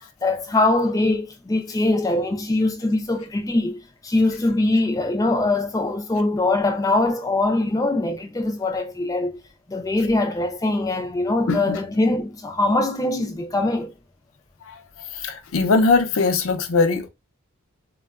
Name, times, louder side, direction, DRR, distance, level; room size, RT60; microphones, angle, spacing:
voice 1, 0.2-9.3 9.7-13.9, left 2 dB, 15° left, 0.3 m, -22 dB
voice 2, 15.5-17.1, left 3 dB, 70° left, 0.5 m, -19 dB
3.6 x 2.2 x 2.3 m
head